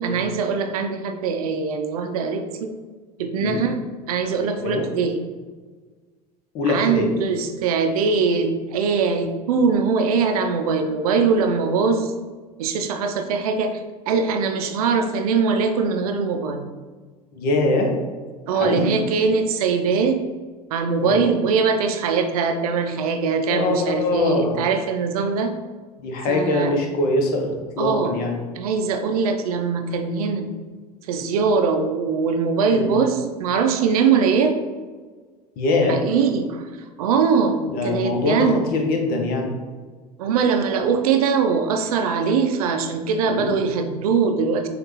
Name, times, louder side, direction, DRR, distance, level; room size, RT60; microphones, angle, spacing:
voice 1, 0.0-2.7 3.2-3.8 4.1-5.2 6.7-12.1 12.6-16.7 18.5-20.3 20.7-25.5 26.3-26.7 27.8-28.1 28.6-30.5 31.1-34.6 35.9-36.6 37.0-37.6 37.8-38.6 40.2-44.7, right 5 dB, 65° right, 6 dB, 0.5 m, -22 dB
voice 2, 6.5-7.1 17.3-17.9 18.5-18.9 21.0-21.2 23.5-24.6 26.0-28.4 32.7-32.9 35.6-36.0 37.7-39.5 43.2-43.6, left 2 dB, 50° left, 2 dB, 1.0 m, -23 dB
6.4 x 2.5 x 3.1 m, 1.4 s
figure-of-eight pair, 70°, 20 cm